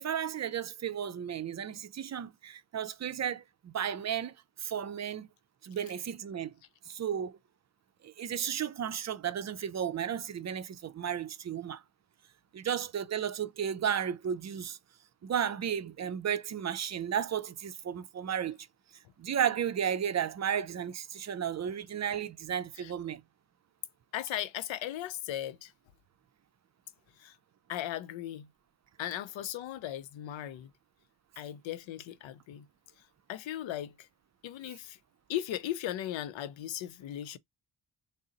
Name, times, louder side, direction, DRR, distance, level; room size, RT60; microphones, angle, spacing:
voice 1, 0.0-4.3 4.6-5.3 5.6-6.5 6.9-7.4 8.0-11.8 12.5-14.8 15.2-18.6 19.2-23.2, right 8 dB, 40° right, 0.5 m, -33 dB
voice 2, 24.1-25.7 27.2-27.3 27.7-28.5 29.0-30.7 31.4-32.7 33.3-33.9 34.4-35.0 35.3-37.4, left 12 dB, 85° left, 0.5 m, -37 dB
3.9 x 2.0 x 3.7 m
cardioid pair, 85°, 44 cm